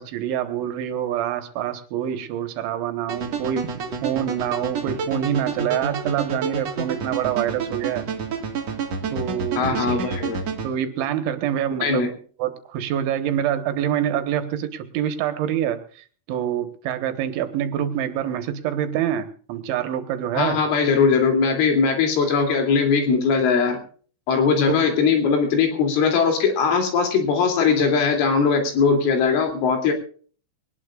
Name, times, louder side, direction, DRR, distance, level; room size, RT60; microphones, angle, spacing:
voice 1, 0.0-3.7 4.0-8.1 9.1-10.2 10.6-12.1 12.4-20.6 24.7-24.8, right 10 dB, 75° right, 8 dB, 3.6 m, -26 dB
sound 1, 3.1-10.7, right 5 dB, 50° right, 2.3 m, -29 dB
voice 2, 9.6-10.4 11.8-12.1 20.4-23.8 24.3-29.9, left 5 dB, 80° left, 4 dB, 5.4 m, -20 dB
21.5 x 19.5 x 2.5 m, 0.43 s
omnidirectional pair, 5.6 m